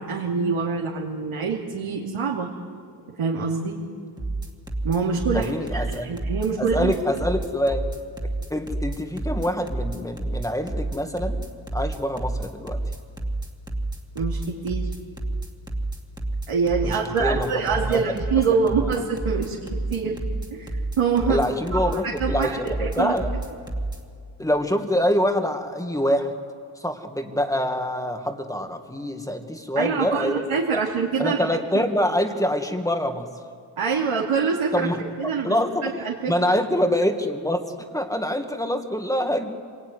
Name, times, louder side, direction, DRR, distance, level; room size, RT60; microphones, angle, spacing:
voice 1, 0.0-2.5 3.2-3.8 4.8-6.9 14.1-14.9 16.5-20.2 20.5-21.4 21.7-23.1 29.7-31.4 33.8-34.9 35.2-35.5 35.8-36.3, right 5 dB, 80° right, -3 dB, 3.0 m, -25 dB
sound 1, 4.2-24.0, right 2 dB, 10° right, 2.4 m, -29 dB
voice 2, 5.3-6.1 6.6-7.8 8.5-11.4 11.7-12.8 16.8-17.6 17.9-18.1 18.6-18.9 21.3-23.3 24.4-26.3 26.8-30.4 30.7-30.8 31.2-33.3 34.7-35.9 36.3-37.6 37.9-39.5, equal, 5° left, 5 dB, 1.9 m, -25 dB
26.5 x 21.5 x 9.7 m, 2.3 s
wide cardioid pair, 130°, 49 cm